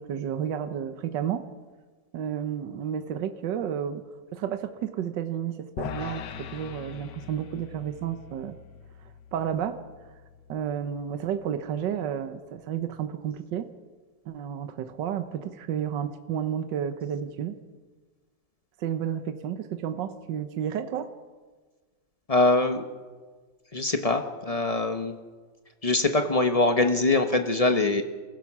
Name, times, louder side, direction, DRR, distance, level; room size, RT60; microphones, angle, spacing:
voice 1, 0.0-1.5 2.1-4.0 4.3-8.6 9.3-9.8 10.5-13.7 14.3-17.6 18.8-21.1, right 9 dB, 70° right, 9 dB, 1.6 m, -31 dB
sound 1, 5.8-12.1, left 8 dB, 70° left, 1.5 m, -42 dB
voice 2, 22.3-22.8 23.7-25.2 25.8-28.0, left 2 dB, 25° left, 6 dB, 0.8 m, -23 dB
27.5 x 16.0 x 6.1 m, 1.4 s
omnidirectional pair, 2.1 m